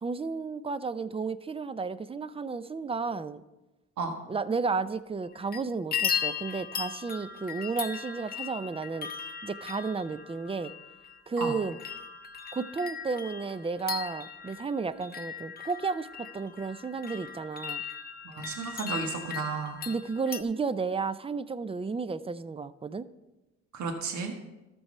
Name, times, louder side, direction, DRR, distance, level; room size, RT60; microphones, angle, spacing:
voice 1, 0.0-3.4 4.3-9.1 9.4-10.7 11.3-11.8 12.5-17.8 19.9-23.1, right 4 dB, 20° right, 16 dB, 0.5 m, -32 dB
sound 1, 5.2-5.6 5.9-20.4, left 7 dB, 30° left, 0.9 m, -37 dB
voice 2, 18.2-19.8 23.7-24.3, right 4 dB, 70° right, 4 dB, 1.5 m, -33 dB
13.0 x 6.2 x 5.5 m, 1.0 s
cardioid pair, 90°, 30 cm